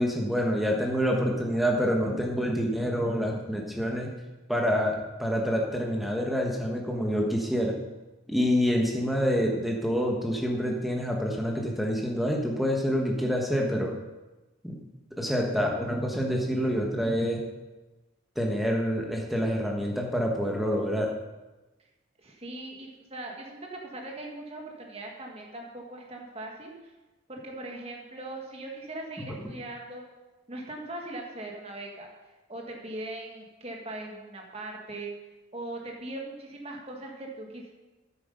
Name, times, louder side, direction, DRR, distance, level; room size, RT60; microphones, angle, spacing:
voice 1, 0.0-4.1 4.5-7.7 8.3-13.9 14.6-14.8 15.2-17.4 18.3-21.1, equal, ahead, -1 dB, 1.3 m, -27 dB
voice 2, 22.2-26.7 27.3-30.0 30.5-32.1 32.5-35.1 35.5-37.7, right 2 dB, 30° right, 0 dB, 1.7 m, -40 dB
9.7 x 8.3 x 5.2 m, 1.1 s
head